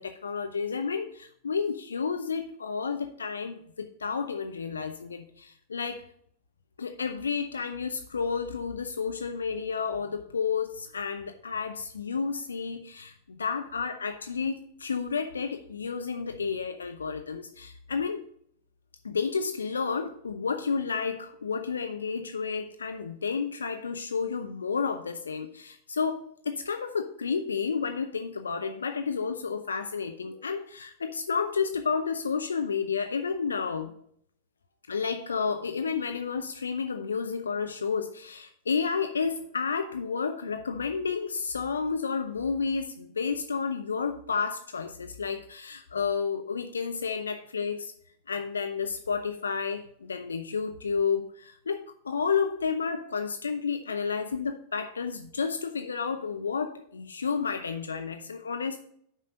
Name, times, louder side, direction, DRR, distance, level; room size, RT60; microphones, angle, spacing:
voice 1, 0.0-6.0 6.8-18.2 19.0-33.9 34.9-47.9 48.3-58.8, left 5 dB, 70° left, 0.6 m, -31 dB
8.2 x 5.6 x 5.2 m
figure-of-eight pair, 90°, 0 cm